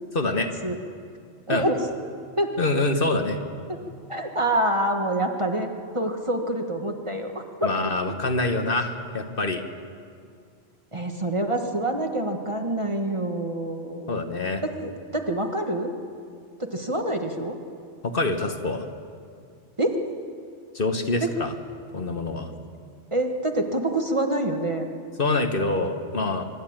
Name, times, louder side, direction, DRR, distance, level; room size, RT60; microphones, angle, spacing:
voice 1, 0.1-0.5 1.5-1.7 2.6-3.4 7.6-9.6 14.1-14.6 18.0-18.9 20.7-21.5 21.9-22.5 25.2-26.4, left 2 dB, 50° left, 6 dB, 1.4 m, -25 dB
voice 2, 1.5-1.8 2.4-2.5 3.7-3.8 4.1-7.3 7.6-7.7 10.9-14.2 14.6-15.9 16.6-17.6 19.8-19.9 21.2-21.3 23.1-24.9, right 1 dB, 25° right, 4 dB, 1.5 m, -26 dB
25.0 x 12.5 x 8.8 m, 2.3 s
omnidirectional pair, 1.2 m